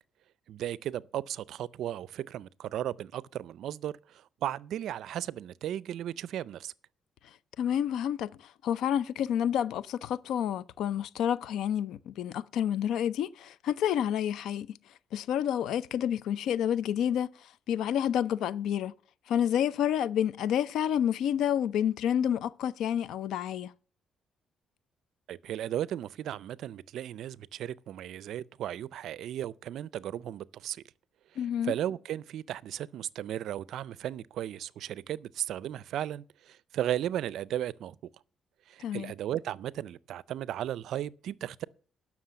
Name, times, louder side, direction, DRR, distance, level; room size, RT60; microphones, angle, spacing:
voice 1, 0.5-6.7 25.3-30.8 31.6-38.0 38.7-41.6, right 11 dB, 75° right, 0.4 m, -35 dB
voice 2, 7.6-14.8 15.1-17.3 17.7-18.9 19.3-23.7 31.4-31.7 38.8-39.1, left 9 dB, 80° left, 0.5 m, -29 dB
11.5 x 6.1 x 6.8 m
cardioid pair, 90°, 0 cm